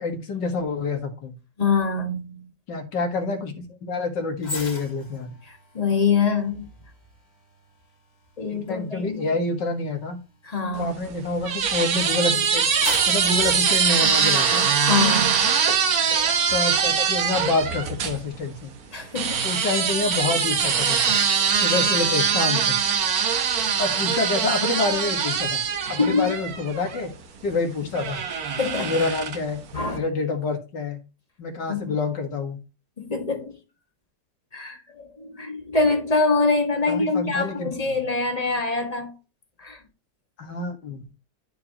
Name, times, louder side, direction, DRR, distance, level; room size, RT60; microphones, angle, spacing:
voice 1, 0.0-1.3 2.7-5.3 8.5-10.2 10.8-12.7 13.1-14.7 16.5-18.7 19.4-21.0 21.6-22.8 23.8-25.6 25.9-27.1 27.4-28.2 28.8-29.6 29.9-31.0 31.4-32.6 36.9-37.7 40.4-41.0, left 3 dB, 80° left, 2.3 m, -27 dB
voice 2, 1.6-2.5 5.5-6.7 8.4-9.2 10.4-10.9 14.8-15.6 18.9-19.5 25.9-26.3 28.6-28.9 29.7-30.0 31.7-32.0 33.0-33.6 34.5-39.1 39.6-39.8, left 4 dB, 20° left, 1.6 m, -24 dB
sound 1, 4.4-11.8 12.3-14.6 15.0-15.2, left 2 dB, 50° left, 2.4 m, -40 dB
sound 2, 10.8-18.2 19.2-27.1 27.9-29.6, right 6 dB, 60° right, 1.5 m, -23 dB
12.5 x 4.7 x 2.9 m
omnidirectional pair, 1.9 m